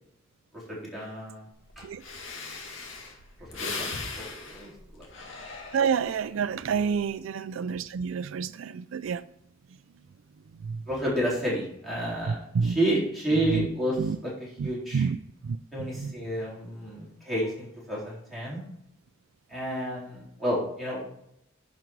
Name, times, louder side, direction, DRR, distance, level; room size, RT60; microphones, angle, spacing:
voice 1, 0.5-1.4 1.8-1.9 3.5-5.1 6.7-6.9 10.9-14.3 14.6-15.1 15.7-18.6 19.5-21.1, right 1 dB, ahead, 4.0 m, -30 dB
Breathing, 1.7-1.8 2.0-6.3 6.7-7.1, left 3 dB, 75° left, 2.0 m, -38 dB
voice 2, 5.7-9.2 10.6-10.8 12.3-12.8 13.4-13.7 14.0-14.2 14.6-15.2 15.4-16.2, right 6 dB, 75° right, 0.4 m, -29 dB
10.5 x 5.3 x 4.6 m
head